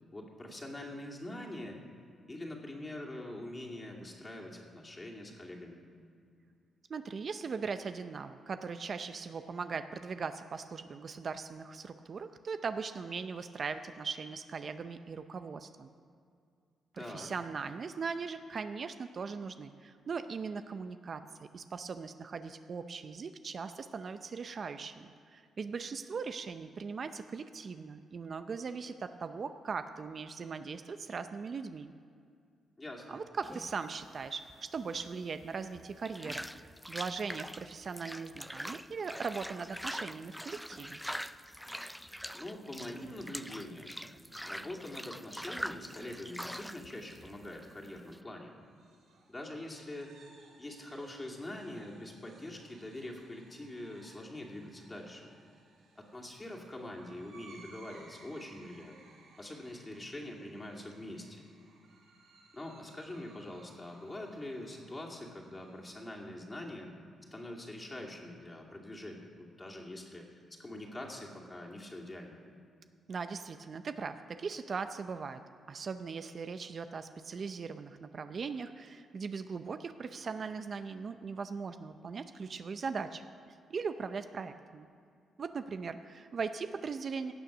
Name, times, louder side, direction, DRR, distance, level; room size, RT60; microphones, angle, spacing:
voice 1, 0.1-1.8 2.3-5.8 17.0-17.3 32.8-33.2 42.3-44.0 44.4-48.5 49.3-50.3 50.6-55.3 56.0-59.0 59.4-61.4 62.5-66.9 67.3-72.4, left 1 dB, 20° left, -1 dB, 2.5 m, -44 dB
voice 2, 6.9-15.9 16.9-31.9 33.1-41.0 73.1-75.4 75.7-84.9 85.4-87.3, right 5 dB, 50° right, 10 dB, 0.5 m, -39 dB
sound 1, 33.4-48.2, equal, ahead, 0.4 m, -44 dB
sound 2, 48.6-65.9, right 4 dB, 80° right, 2.6 m, -61 dB
17.0 x 6.7 x 6.1 m, 2.3 s
cardioid pair, 80°, 0 cm